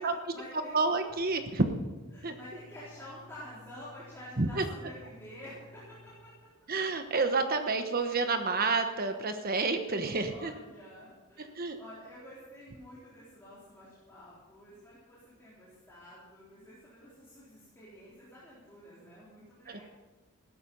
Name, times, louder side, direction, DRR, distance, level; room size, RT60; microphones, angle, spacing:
voice 1, 0.0-0.7 1.5-1.6 2.1-6.3 10.2-19.8, equal, 10° left, -9 dB, 3.9 m, -49 dB
voice 2, 0.7-1.7 2.2-2.4 4.4-4.6 6.7-10.5 11.4-11.8 19.7-19.8, right 3 dB, 40° right, 7 dB, 1.1 m, -29 dB
sound 1, 1.1-6.1, left 3 dB, 30° left, 5.6 m, -56 dB
16.5 x 12.5 x 5.5 m, 1.2 s
head